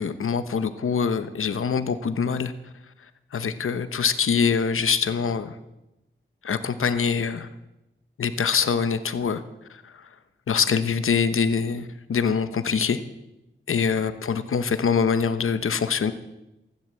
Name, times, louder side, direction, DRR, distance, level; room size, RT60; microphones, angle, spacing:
voice 1, 0.0-2.5 3.3-5.6 6.4-7.5 8.2-9.4 9.7-10.1 10.5-13.0 13.7-16.1, left 6 dB, 90° left, 11 dB, 0.9 m, -24 dB
15.0 x 11.5 x 7.4 m, 0.93 s
wide cardioid pair, 85°, 21 cm